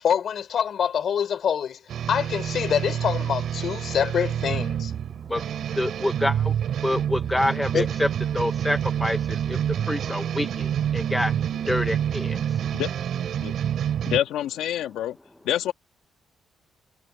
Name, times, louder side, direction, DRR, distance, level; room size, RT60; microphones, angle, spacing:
voice 1, 0.0-1.8 2.1-4.9 7.7-7.9, left 8 dB, 60° left, 4.0 m, -25 dB
sound 1, 1.9-14.2, right 9 dB, 70° right, 2.8 m, -28 dB
voice 2, 5.8-6.5 6.8-9.6 9.9-12.6, left 1 dB, 10° left, 0.6 m, -27 dB
voice 3, 14.1-15.2 15.4-15.7, left 11 dB, 85° left, 1.6 m, -26 dB
cardioid pair, 100°, 0 cm